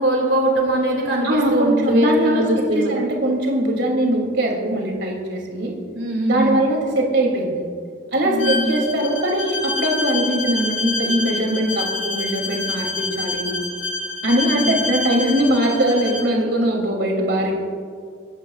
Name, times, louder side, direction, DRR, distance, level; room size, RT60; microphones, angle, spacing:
voice 1, 0.0-2.9 5.9-6.6 8.2-8.7 14.5-14.8, right 1 dB, 75° right, -1 dB, 2.7 m, -21 dB
voice 2, 1.2-5.7 6.3-7.6 8.1-13.5 14.2-17.5, right 1 dB, 60° right, 0 dB, 3.0 m, -21 dB
Bowed string instrument, 8.4-16.3, left 3 dB, 80° left, 2.1 m, -27 dB
26.0 x 14.5 x 2.5 m, 2.1 s
head